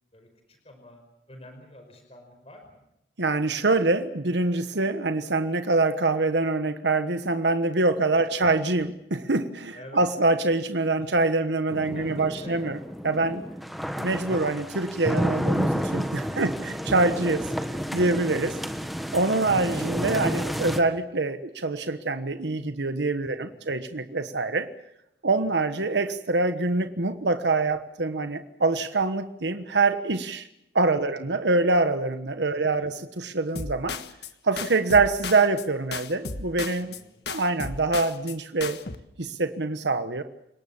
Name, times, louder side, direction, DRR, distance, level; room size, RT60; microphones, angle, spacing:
voice 1, 0.1-1.0 1.3-2.8 8.2-8.3 9.7-10.0 11.0-11.1 11.9-12.7 16.1-16.6 23.2-23.7 31.0-31.2 32.5-32.9 36.8-37.2, left 1 dB, 35° left, 5 dB, 5.3 m, -48 dB
voice 2, 3.2-12.8 13.0-13.4 14.0-17.4 17.9-18.5 19.1-24.7 25.2-30.5 30.7-34.0 34.4-37.0 37.3-38.8 39.2-40.2, right 3 dB, 85° right, 9 dB, 1.3 m, -25 dB
sound 1, 11.7-20.8, equal, ahead, 1.4 m, -30 dB
sound 2, 33.6-34.3 34.6-35.7 35.9-37.0 37.3-38.4 38.6-39.0, left 4 dB, 75° left, 1.6 m, -35 dB
29.5 x 19.0 x 7.2 m, 0.83 s
head